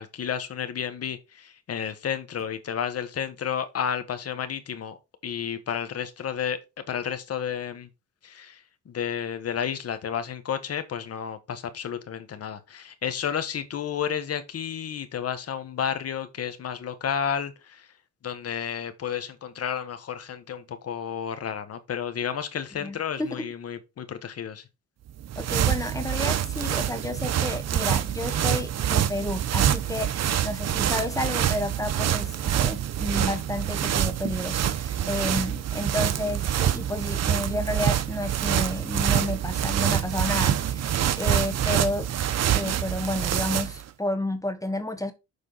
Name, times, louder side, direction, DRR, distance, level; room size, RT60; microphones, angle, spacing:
voice 1, 0.0-5.0 5.2-6.6 6.9-7.9 8.2-8.6 8.9-17.8 18.2-24.6 35.3-35.4, left 8 dB, 55° left, 1.4 m, -31 dB
voice 2, 22.7-23.4 25.4-40.8 41.2-42.1 42.5-45.1, left 1 dB, 10° left, 1.2 m, -31 dB
sound 1, 25.1-43.8, right 10 dB, 60° right, 0.9 m, -26 dB
7.0 x 4.8 x 4.1 m
cardioid pair, 90°, 30 cm